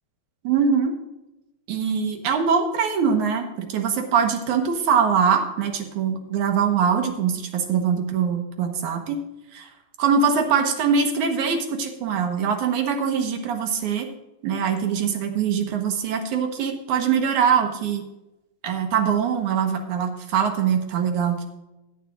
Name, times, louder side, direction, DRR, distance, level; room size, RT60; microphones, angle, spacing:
voice 1, 0.4-1.0 1.7-9.2 9.5-9.7 10.0-14.1 14.4-18.0 18.6-21.4, right 6 dB, 80° right, 5 dB, 2.8 m, -23 dB
16.0 x 10.0 x 2.5 m, 0.94 s
omnidirectional pair, 3.4 m